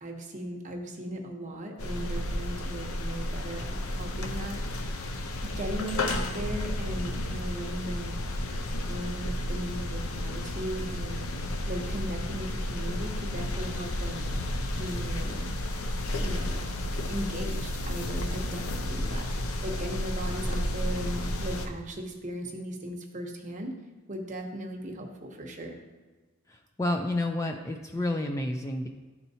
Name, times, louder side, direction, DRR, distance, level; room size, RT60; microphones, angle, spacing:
voice 1, 0.0-5.0 5.4-8.1 8.8-14.3 14.8-15.5 16.2-16.7 17.1-23.7 24.1-25.8, right 1 dB, 35° right, 1 dB, 0.9 m, -38 dB
sound 1, 1.8-21.7, left 1 dB, 80° left, 0.7 m, -32 dB
voice 2, 26.5-28.9, left 1 dB, 15° left, 3 dB, 0.3 m, -30 dB
12.0 x 4.3 x 2.7 m, 1.3 s
head